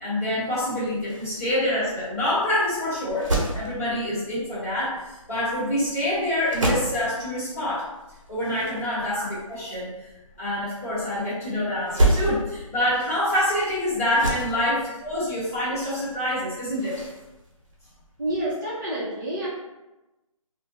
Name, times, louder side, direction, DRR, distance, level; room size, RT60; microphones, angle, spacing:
voice 1, 0.0-5.0 5.3-7.8 8.3-9.2 9.5-9.9 10.4-17.0, left 1 dB, 25° left, -12 dB, 1.2 m, -26 dB
sound 1, 0.7-18.5, right 1 dB, 60° right, 0.9 m, -32 dB
voice 2, 18.2-19.5, right 1 dB, 35° right, -9 dB, 0.7 m, -29 dB
2.3 x 2.2 x 2.8 m, 1.0 s
hypercardioid pair, 170°, 18 cm